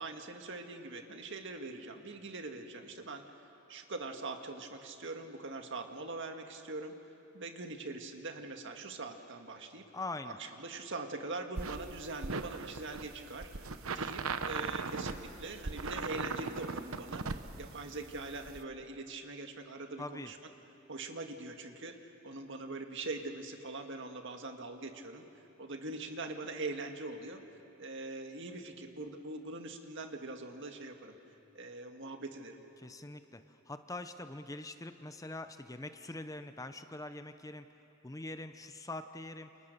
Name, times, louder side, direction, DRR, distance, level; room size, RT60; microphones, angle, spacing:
voice 1, 0.0-3.2 3.7-6.9 7.3-9.9 10.2-20.4 20.9-25.2 25.6-27.4 27.8-31.2 31.5-32.6, right 2 dB, 60° right, 5 dB, 1.9 m, -42 dB
voice 2, 9.9-10.4 20.0-20.3 32.8-37.7 38.0-39.5, left 2 dB, 15° left, 9 dB, 0.7 m, -43 dB
sound 1, 11.6-18.6, right 4 dB, 75° right, 1.0 m, -39 dB
29.0 x 29.0 x 6.8 m, 2.8 s
head